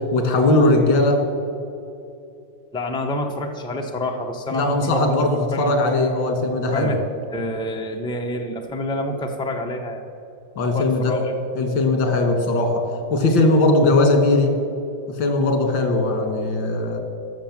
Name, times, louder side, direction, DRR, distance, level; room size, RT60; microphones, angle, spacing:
voice 1, 0.1-1.2 4.5-7.0 10.6-11.2 11.6-14.5 15.2-17.0, left 2 dB, 85° left, 4 dB, 2.3 m, -19 dB
voice 2, 2.7-5.2 5.5-5.7 6.7-7.0 7.3-10.1 10.7-11.3, left 1 dB, 5° left, 3 dB, 0.4 m, -27 dB
14.0 x 6.4 x 7.3 m, 2.6 s
omnidirectional pair, 2.0 m